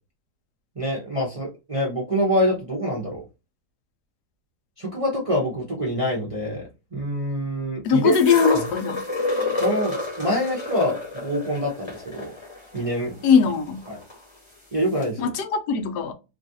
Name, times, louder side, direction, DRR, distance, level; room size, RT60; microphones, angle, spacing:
voice 1, 0.8-3.2 4.8-8.2 8.5-8.6 9.6-12.3 12.7-13.1 13.9-14.0 14.7-15.3, equal, 40° right, 0.5 m, -26 dB
voice 2, 7.8-9.0 13.2-13.8 15.2-16.1, left 6 dB, 85° left, 1.2 m, -20 dB
sound 1, 8.1-14.2 15.0-15.1, left 2 dB, 25° left, 0.8 m, -29 dB
3.0 x 2.4 x 2.6 m
omnidirectional pair, 1.7 m